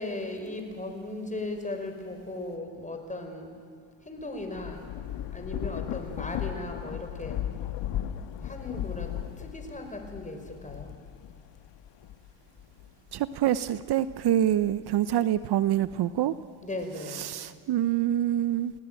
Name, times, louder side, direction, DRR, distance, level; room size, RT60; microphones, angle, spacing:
voice 1, 0.0-3.5 4.0-4.9 5.3-7.4 8.4-9.1 9.4-10.9 16.6-17.4, left 2 dB, 15° left, 4 dB, 5.0 m, -37 dB
Thunder / Rain, 4.2-13.1 13.7-15.0, left 11 dB, 65° left, 1.5 m, -37 dB
voice 2, 13.1-16.3 17.2-18.7, right 11 dB, 55° right, 15 dB, 0.8 m, -26 dB
29.5 x 18.5 x 9.0 m, 2.2 s
cardioid pair, 90°, 47 cm